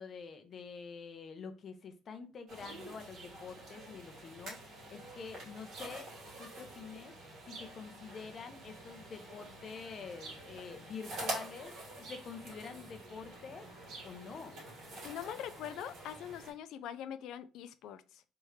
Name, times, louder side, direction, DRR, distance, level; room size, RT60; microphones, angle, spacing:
voice 1, 0.0-6.1 6.4-7.1 7.5-11.8 12.1-14.6, left 5 dB, 40° left, 0.7 m, -47 dB
sound 1, 2.5-16.5, right 2 dB, 60° right, 2.1 m, -47 dB
voice 2, 15.0-18.2, left 10 dB, 80° left, 0.3 m, -43 dB
3.5 x 3.1 x 3.1 m
cardioid pair, 135°, 0 cm